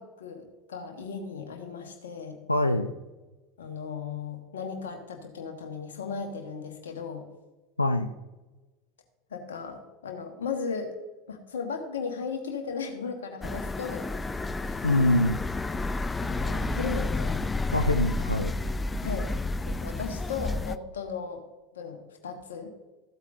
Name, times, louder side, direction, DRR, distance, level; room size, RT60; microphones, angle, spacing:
voice 1, 0.0-2.4 3.6-7.3 9.3-10.9 11.3-14.1 14.6-14.9 16.2-17.4 19.0-19.3 19.6-21.4 21.7-22.7, left 5 dB, 70° left, 4 dB, 1.6 m, -36 dB
voice 2, 2.5-2.9 7.8-8.1 14.8-15.4 17.7-18.5, left 1 dB, 90° left, 7 dB, 0.5 m, -24 dB
sound 1, 13.4-20.8, left 2 dB, 15° left, 0.4 m, -30 dB
14.5 x 8.2 x 2.7 m, 1.1 s
figure-of-eight pair, 75°, 0 cm